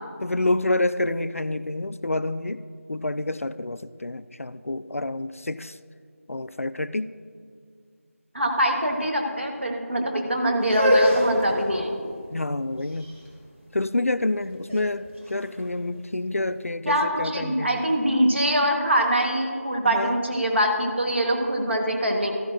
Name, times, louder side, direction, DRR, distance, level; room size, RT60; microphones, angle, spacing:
voice 1, 0.2-2.6 2.9-5.8 6.3-7.1 12.3-13.1 13.7-17.8 19.9-20.2, left 2 dB, 70° left, 14 dB, 0.4 m, -28 dB
voice 2, 8.3-12.1 16.8-22.3, equal, 50° right, 2 dB, 1.3 m, -23 dB
sound 1, 10.6-16.5, equal, 65° right, 2.5 m, -27 dB
13.5 x 10.5 x 2.5 m, 2.1 s
figure-of-eight pair, 175°, 8 cm